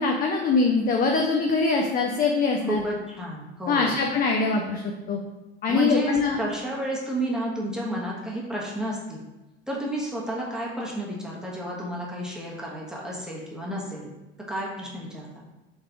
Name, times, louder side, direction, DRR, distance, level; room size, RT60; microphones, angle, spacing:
voice 1, 0.0-2.8 3.7-4.8 5.1-5.2 5.6-6.4, left 4 dB, 30° left, 1 dB, 0.5 m, -23 dB
voice 2, 2.7-4.1 5.7-9.2 9.7-14.1 14.5-15.5, right 1 dB, ahead, -5 dB, 1.2 m, -31 dB
3.5 x 3.2 x 3.7 m, 1.0 s
hypercardioid pair, 75°, 30 cm